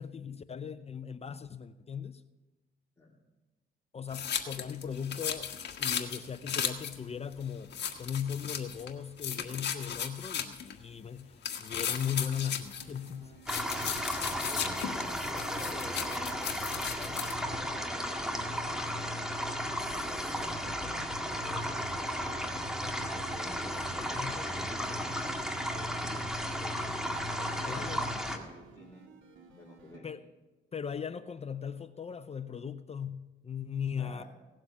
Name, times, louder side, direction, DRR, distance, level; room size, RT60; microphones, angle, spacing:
voice 1, 0.0-2.2 3.9-5.5 5.8-13.3 19.8-20.2 23.6-24.4 27.7-28.1 30.0-30.2 30.7-34.2, left 7 dB, 30° left, 13 dB, 0.5 m, -38 dB
sound 1, 4.1-7.0 7.3-7.4 7.7-8.9 9.2-10.7 11.4-13.1 13.5-17.3, left 8 dB, 60° left, 1.5 m, -36 dB
sound 2, 12.3-30.0, right 4 dB, 80° right, 2.3 m, -55 dB
sound 3, 13.5-28.4, equal, 5° right, 1.8 m, -34 dB
voice 2, 14.5-16.3 16.9-19.2 20.0-21.0 21.4-25.1 25.7-26.9 27.3-29.0 29.6-30.2 33.9-34.2, left 2 dB, 15° left, -6 dB, 3.2 m, -50 dB
17.5 x 7.6 x 7.1 m, 1.2 s
cardioid pair, 90°, 20 cm